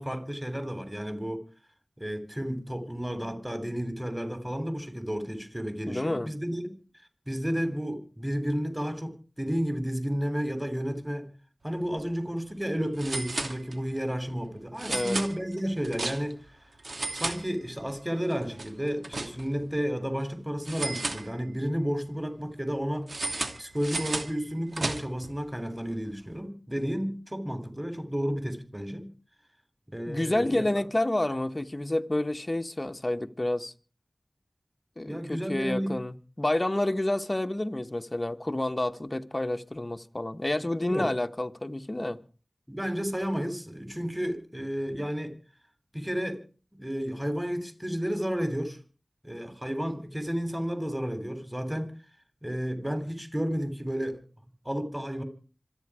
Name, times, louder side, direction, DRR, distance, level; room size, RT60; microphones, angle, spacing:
voice 1, 0.0-1.4 2.0-6.8 7.3-11.3 11.6-16.4 17.1-23.1 23.6-29.1 29.9-30.7 35.1-36.0 40.9-41.1 42.7-45.3 45.9-46.4 46.7-48.8 49.2-51.9 52.4-54.2 54.6-55.2, equal, 10° right, 3.2 m, -32 dB
voice 2, 5.9-6.3 14.9-15.2 30.1-33.7 35.0-42.2, left 1 dB, 30° left, 1.1 m, -29 dB
sound 1, 11.8-12.0 12.3-12.4 13.0-14.0 14.8-16.5 16.8-18.0 18.3-19.7 20.6-21.8 23.1-25.3, right 2 dB, 75° right, 2.7 m, -34 dB
26.5 x 9.3 x 4.9 m
wide cardioid pair, 60°, 0 cm